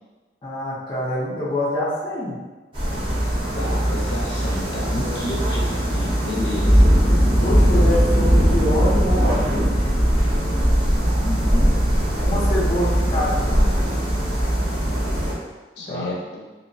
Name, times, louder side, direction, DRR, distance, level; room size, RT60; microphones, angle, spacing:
voice 1, 0.4-2.4 4.9-5.2 7.3-9.9 12.2-13.7 15.9-16.1, left 1 dB, 30° left, -9 dB, 0.5 m, -26 dB
sound 1, 2.7-15.3, equal, 30° right, 0.7 m, -19 dB
voice 2, 3.5-5.6 5.9-6.8 11.2-11.7 15.8-16.2, left 1 dB, 75° left, -2 dB, 0.6 m, -30 dB
2.7 x 2.0 x 2.6 m, 1.2 s
head